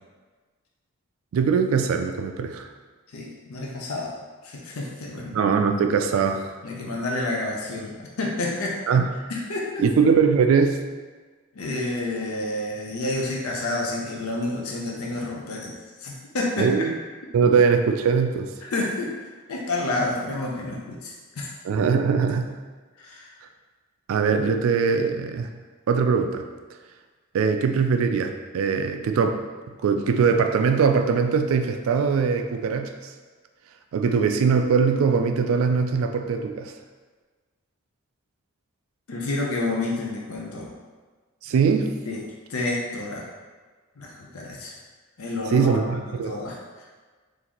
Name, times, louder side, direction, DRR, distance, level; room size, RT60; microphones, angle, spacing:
voice 1, 1.3-2.7 5.3-6.5 8.9-9.1 9.8-10.8 16.6-16.9 17.3-18.5 21.6-22.6 24.1-25.5 25.9-26.4 27.3-29.4 29.8-32.9 33.9-36.7 41.4-41.9 45.5-46.4, right 5 dB, 75° right, 6 dB, 0.3 m, -21 dB
voice 2, 3.1-4.1 4.4-5.4 6.6-8.8 9.3-9.8 11.5-16.9 18.6-19.2 19.5-21.5 23.0-23.3 39.1-40.7 42.1-42.2 42.5-43.3 44.0-44.8 45.2-46.9, left 2 dB, 80° left, -2 dB, 0.6 m, -29 dB
3.8 x 2.6 x 2.9 m, 1.4 s
head